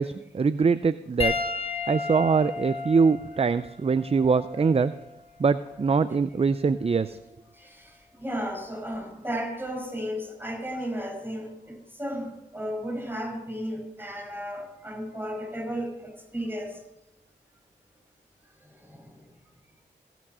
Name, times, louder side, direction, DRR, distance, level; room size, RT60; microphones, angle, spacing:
voice 1, 0.0-1.3 1.9-4.9 5.4-7.2, right 5 dB, 35° right, 14 dB, 0.5 m, -23 dB
Piano, 1.2-5.9 6.8-7.0 8.9-9.0, left 4 dB, 30° left, 4.2 m, -34 dB
voice 2, 7.6-16.8 18.8-19.1, equal, 10° right, 0 dB, 5.9 m, -34 dB
17.0 x 6.1 x 6.2 m, 0.89 s
cardioid pair, 45°, 19 cm